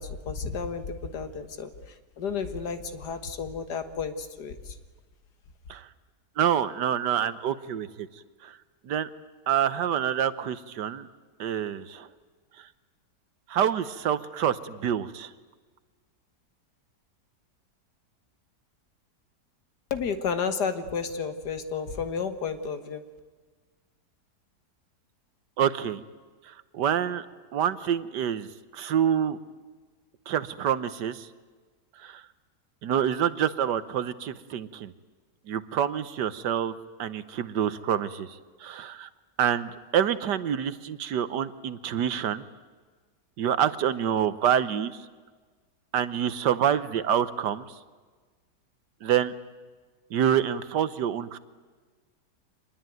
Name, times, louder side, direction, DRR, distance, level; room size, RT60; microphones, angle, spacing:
voice 1, 0.0-1.7 2.2-4.8 19.9-23.0, left 6 dB, 75° left, 9 dB, 2.0 m, -32 dB
voice 2, 6.4-8.1 8.4-8.5 8.8-9.1 9.5-11.1 11.4-12.1 13.5-15.3 25.6-26.0 26.5-27.3 27.5-28.5 28.7-29.4 30.3-31.3 32.0-32.2 32.8-34.9 35.5-39.1 39.4-42.4 43.4-44.9 45.9-47.6 49.0-49.3 50.1-51.4, right 9 dB, 85° right, 14 dB, 1.6 m, -27 dB
25.5 x 20.5 x 9.2 m, 1.4 s
omnidirectional pair, 1.8 m